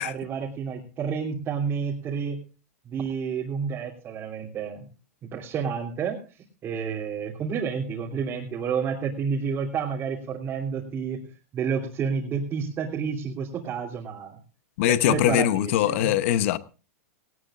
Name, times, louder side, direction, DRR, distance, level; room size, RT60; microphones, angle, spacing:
voice 1, 0.0-2.4 2.8-4.8 5.2-6.2 6.6-11.2 11.5-14.4 14.9-16.1, right 6 dB, 25° right, 3.0 m, -30 dB
voice 2, 14.8-16.6, left 13 dB, 55° left, 1.0 m, -22 dB
18.5 x 17.5 x 2.5 m
hypercardioid pair, 135°, 8 cm